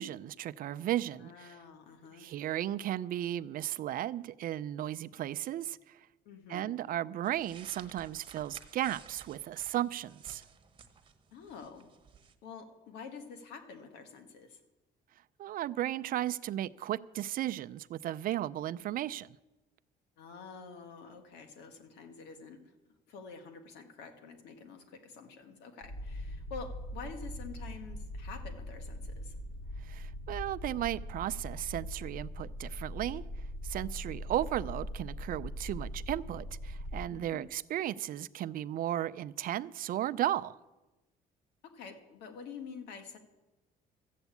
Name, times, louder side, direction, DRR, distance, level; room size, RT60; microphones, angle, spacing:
voice 1, 0.0-1.5 2.2-6.1 6.5-10.4 15.4-19.4 29.8-33.2 33.6-40.6, right 12 dB, 55° right, 0.5 m, -35 dB
voice 2, 1.2-2.3 6.3-6.7 11.3-11.9 12.4-14.6 20.2-22.7 23.1-29.4 37.1-37.5 41.6-43.2, left 5 dB, 85° left, 1.9 m, -48 dB
sound 1, 7.2-12.3, right 6 dB, 30° right, 1.2 m, -55 dB
sound 2, 25.8-37.0, equal, 55° left, 3.1 m, -41 dB
13.5 x 8.1 x 8.3 m
cardioid pair, 110°, 17 cm